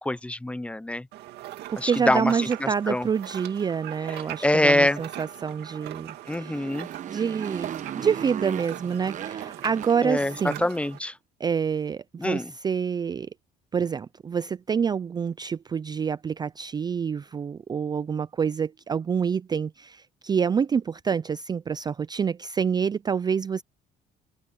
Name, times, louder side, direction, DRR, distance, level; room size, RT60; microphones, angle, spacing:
voice 1, 0.0-1.0 1.8-2.3 2.9-3.0 4.4-5.0 6.3-6.9 10.0-10.3 10.6-11.1 12.2-12.5, left 1 dB, 5° left, 0.7 m, -24 dB
sound 1, 1.1-11.0, right 14 dB, 80° right, 2.2 m, -41 dB
voice 2, 1.7-6.7 7.1-10.6 11.4-13.3 13.7-23.6, right 6 dB, 25° right, 0.4 m, -27 dB
Motorcycle, 6.2-10.8, right 9 dB, 50° right, 1.1 m, -37 dB
cardioid pair, 110°, 17 cm